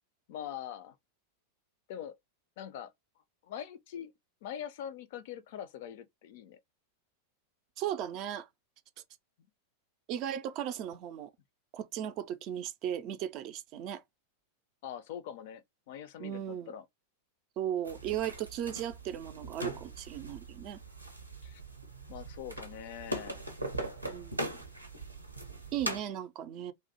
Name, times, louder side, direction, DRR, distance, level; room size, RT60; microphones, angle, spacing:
voice 1, 0.3-1.0 1.9-2.2 2.6-2.9 3.4-4.1 4.4-6.6 14.8-16.8 21.4-21.6 22.1-23.4, left 10 dB, 50° left, 0.4 m, -43 dB
voice 2, 7.8-8.5 10.1-11.3 11.7-14.0 16.2-16.7 17.6-20.8 24.0-24.6 25.7-26.7, right 10 dB, 40° right, 0.4 m, -36 dB
sound 1, 17.8-26.0, right 1 dB, 85° right, 0.6 m, -40 dB
2.5 x 2.0 x 2.7 m
figure-of-eight pair, 90°, 0 cm